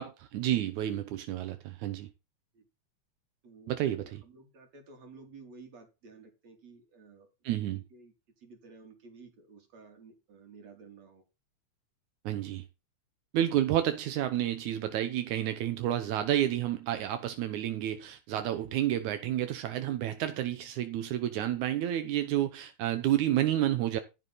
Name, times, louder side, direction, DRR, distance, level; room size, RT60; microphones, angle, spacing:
voice 1, 0.0-2.1 3.7-4.2 7.4-7.8 12.3-12.7 13.3-24.0, right 12 dB, 80° right, 2.4 m, -30 dB
voice 2, 3.4-7.3 7.6-11.2, right 4 dB, 60° right, 4.4 m, -53 dB
15.0 x 7.0 x 4.1 m
omnidirectional pair, 3.4 m